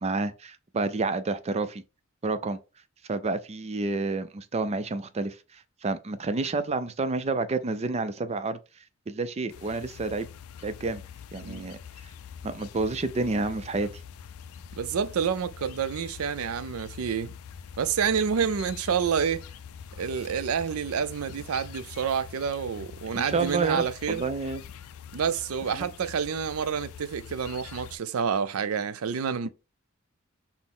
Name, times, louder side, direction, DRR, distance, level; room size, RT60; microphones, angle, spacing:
voice 1, 0.0-1.8 2.2-2.6 3.1-8.6 9.1-10.3 10.6-11.0 11.3-11.8 12.4-13.9 23.1-24.6 25.7-25.9, right 3 dB, 30° right, 0.4 m, -29 dB
sound 1, 9.5-28.0, left 7 dB, 85° left, 0.4 m, -44 dB
voice 2, 14.8-17.3 17.8-19.4 20.0-24.2 25.1-29.5, right 7 dB, 85° right, 0.4 m, -28 dB
6.0 x 2.0 x 3.7 m
head